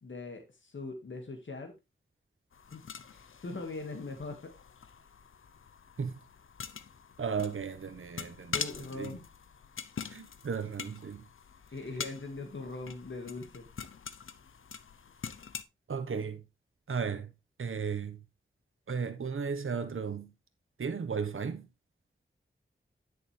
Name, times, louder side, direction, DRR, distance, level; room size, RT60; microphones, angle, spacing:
voice 1, 0.0-1.7 2.7-4.5 8.5-9.2 11.7-13.7, left 3 dB, 70° left, 1.8 m, -41 dB
sound 1, 2.5-15.6, left 6 dB, 90° left, 0.7 m, -44 dB
voice 2, 7.2-8.5 9.0-9.1 10.1-11.2 15.9-16.4 16.9-17.3 17.6-18.2 18.9-20.3 20.8-21.7, right 6 dB, 90° right, 1.2 m, -35 dB
10.5 x 6.7 x 3.3 m
wide cardioid pair, 85°, 20 cm